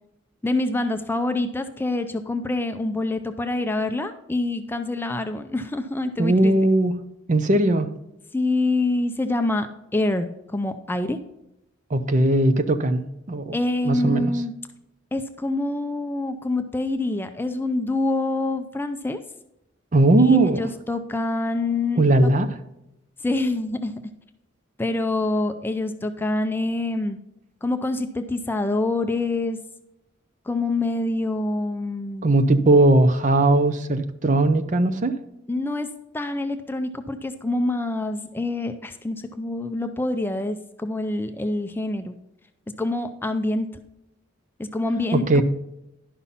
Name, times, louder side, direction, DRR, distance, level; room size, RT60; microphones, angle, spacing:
voice 1, 0.4-6.5 8.3-9.7 9.9-11.2 13.5-14.5 15.1-19.2 20.2-22.0 23.2-23.9 24.8-27.2 27.6-29.6 30.5-32.3 35.5-35.9 36.1-42.2 42.8-43.7 44.6-45.4, left 2 dB, 10° left, 8 dB, 0.4 m, -26 dB
voice 2, 6.2-6.9 7.3-7.9 11.9-13.6 13.8-14.3 19.9-20.6 22.0-22.5 32.2-35.1 45.1-45.4, right 2 dB, 40° right, 10 dB, 0.6 m, -18 dB
11.0 x 5.7 x 4.1 m, 0.88 s
head